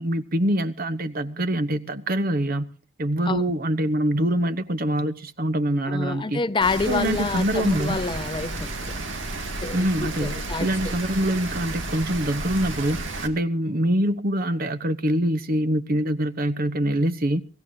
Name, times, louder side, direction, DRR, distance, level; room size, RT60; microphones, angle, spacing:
voice 1, 0.0-2.7 3.0-6.4 6.9-8.0 9.7-17.5, right 1 dB, 50° right, 1.0 m, -24 dB
voice 2, 5.9-9.0 9.3-10.9, left 3 dB, 25° left, 0.6 m, -28 dB
Rain, 6.6-13.3, right 2 dB, 75° right, 2.0 m, -32 dB
23.5 x 15.0 x 2.7 m
head